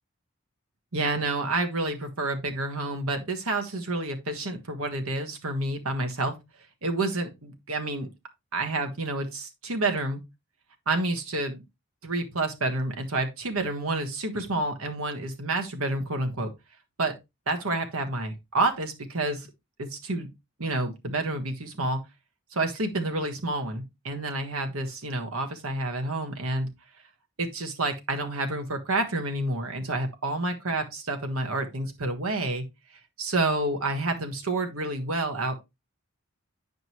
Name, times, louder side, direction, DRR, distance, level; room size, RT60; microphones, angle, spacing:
voice 1, 0.9-6.3 6.8-8.1 8.5-10.2 10.9-11.6 12.0-16.5 17.0-17.1 17.5-19.5 19.8-20.3 20.6-22.0 22.5-26.7 27.4-32.6 33.2-35.5, right 2 dB, 80° right, 1.5 m, -29 dB
9.4 x 5.2 x 3.0 m
head